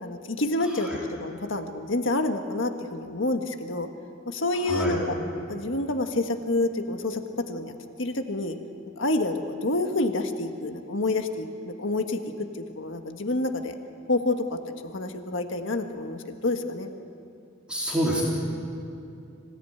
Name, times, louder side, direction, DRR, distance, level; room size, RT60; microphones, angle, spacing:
voice 1, 0.0-3.9 4.3-5.0 5.5-7.7 8.0-8.6 9.0-12.2 12.6-13.7 14.1-14.6 14.9-16.9, left 2 dB, 85° left, 6 dB, 1.6 m, -28 dB
voice 2, 0.6-1.0 4.5-5.0 17.7-18.2, right 1 dB, 5° right, -5 dB, 3.9 m, -28 dB
25.5 x 18.0 x 9.5 m, 2.6 s
head